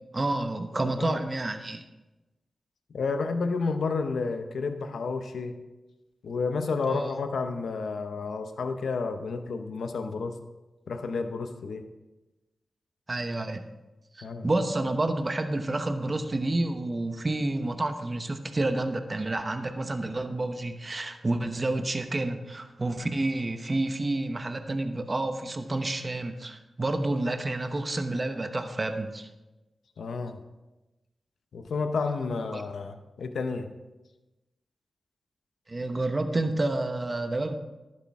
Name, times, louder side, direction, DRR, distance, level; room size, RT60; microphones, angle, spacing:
voice 1, 0.1-1.8 6.9-7.1 13.1-13.6 14.1-29.3 32.5-32.6 35.7-37.5, right 2 dB, 35° right, 7 dB, 1.0 m, -29 dB
voice 2, 0.8-1.2 2.9-5.6 6.2-10.4 10.9-11.9 14.2-14.5 30.0-30.4 31.5-33.7, left 4 dB, 85° left, 8 dB, 0.8 m, -31 dB
11.5 x 9.7 x 3.6 m, 1.1 s
cardioid pair, 55°, 0 cm